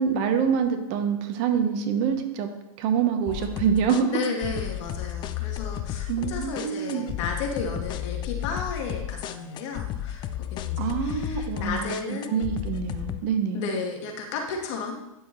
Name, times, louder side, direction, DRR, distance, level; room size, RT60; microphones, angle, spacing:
voice 1, 0.0-2.5 2.8-4.1 6.1-7.1 10.8-13.6, right 7 dB, 40° right, 6 dB, 1.1 m, -26 dB
sound 1, 3.3-13.2, left 12 dB, 25° left, 0.4 m, -33 dB
voice 2, 4.1-12.5 13.5-15.0, left 4 dB, 55° left, 2 dB, 1.7 m, -33 dB
10.0 x 6.7 x 3.2 m, 0.91 s
hypercardioid pair, 130°, 18 cm